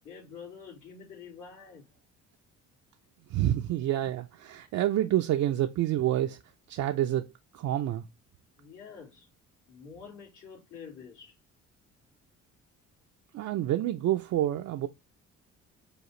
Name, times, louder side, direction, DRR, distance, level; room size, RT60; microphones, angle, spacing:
voice 1, 0.0-1.9 8.6-9.3 9.7-11.4, left 6 dB, 80° left, 2.2 m, -47 dB
voice 2, 3.3-6.4 6.7-7.3 7.5-8.0 13.3-14.9, right 13 dB, 65° right, 0.4 m, -28 dB
4.8 x 2.4 x 3.1 m
cardioid pair, 90°, 30 cm